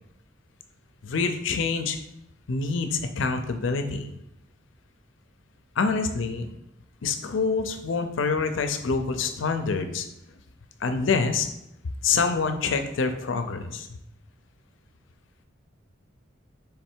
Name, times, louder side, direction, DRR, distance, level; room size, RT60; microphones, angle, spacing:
voice 1, 1.0-2.0 2.5-4.1 5.8-6.5 7.0-10.1 10.8-11.5 12.0-14.0, left 4 dB, 70° left, 7 dB, 0.5 m, -26 dB
3.6 x 3.2 x 4.4 m, 0.82 s
head